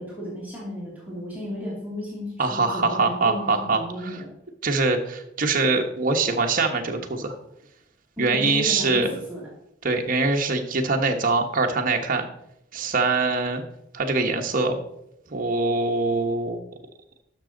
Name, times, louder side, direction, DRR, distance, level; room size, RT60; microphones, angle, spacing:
voice 1, 0.0-4.3 8.2-9.4, left 1 dB, 10° right, -7 dB, 2.5 m, -34 dB
voice 2, 2.4-4.2 4.6-7.3 8.2-9.1 9.8-12.3 12.7-13.6 13.9-14.8 15.3-16.6, right 3 dB, 45° right, 3 dB, 1.1 m, -23 dB
12.0 x 6.1 x 3.8 m, 0.81 s
head